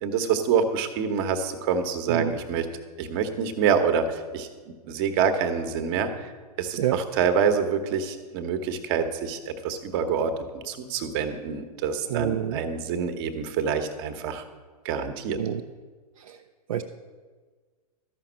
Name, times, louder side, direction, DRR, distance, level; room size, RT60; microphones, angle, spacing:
voice 1, 0.0-2.6 3.0-4.5 4.8-6.3 6.6-14.4 14.8-15.4, right 6 dB, 40° right, 8 dB, 1.2 m, -26 dB
voice 2, 2.1-2.4 6.8-7.0 12.1-12.6 15.3-15.6 16.2-16.4 16.7-16.8, right 11 dB, 55° right, 4 dB, 0.7 m, -28 dB
13.0 x 5.9 x 7.5 m, 1.4 s
figure-of-eight pair, 115°, 20 cm